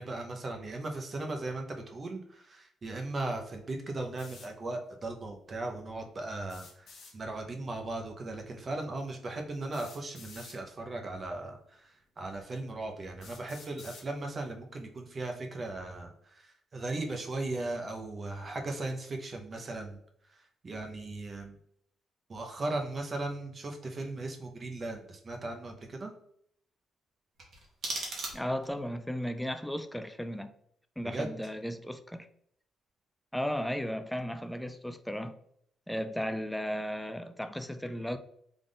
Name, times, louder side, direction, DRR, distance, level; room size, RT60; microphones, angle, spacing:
voice 1, 0.0-20.0 20.6-21.6 22.3-26.1 31.0-31.3, right 2 dB, 35° right, 0.7 m, -37 dB
sound 1, 4.2-4.5 6.4-7.1 8.6-8.7 9.7-10.6 11.6-11.7 12.4-12.5 13.2-14.1, left 4 dB, 65° left, 1.0 m, -51 dB
sound 2, 27.3-28.8, right 2 dB, 55° right, 1.2 m, -38 dB
voice 2, 28.3-30.5 31.0-32.3 33.3-35.4 35.9-38.2, equal, 5° left, 0.3 m, -35 dB
3.5 x 2.4 x 3.8 m
cardioid pair, 90°, 0 cm